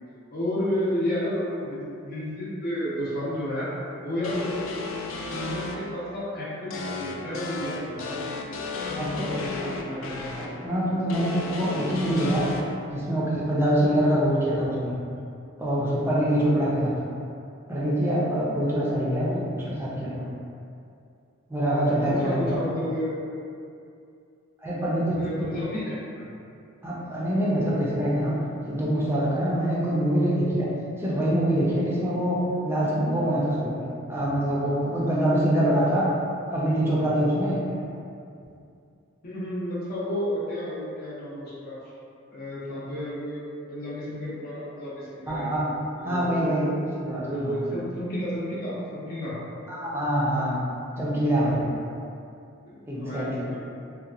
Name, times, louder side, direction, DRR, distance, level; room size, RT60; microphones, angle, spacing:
voice 1, 0.3-3.7 4.0-4.7 5.3-8.6 8.9-10.5 14.0-14.1 22.0-23.1 25.2-26.3 37.7-37.8 39.2-41.7 42.3-43.4 43.7-45.5 46.0-46.7 47.1-49.3 52.7-53.6, equal, 50° left, -8 dB, 0.7 m, -32 dB
sound 1, 4.2-5.7 6.7-10.5 11.1-12.6, left 3 dB, 70° left, 0.3 m, -34 dB
voice 2, 9.0-9.3 9.8-9.9 10.6-12.5 12.9-15.0 15.6-16.9 17.7-20.3 21.5-22.6 24.6-25.2 26.8-28.3 28.7-30.7 31.0-33.7 34.1-36.1 36.5-37.6 45.3-45.7 46.0-47.6 49.7-50.6 51.0-51.7 52.9-53.5, right 1 dB, 10° right, -7 dB, 0.5 m, -25 dB
2.8 x 2.2 x 2.4 m, 2.5 s
head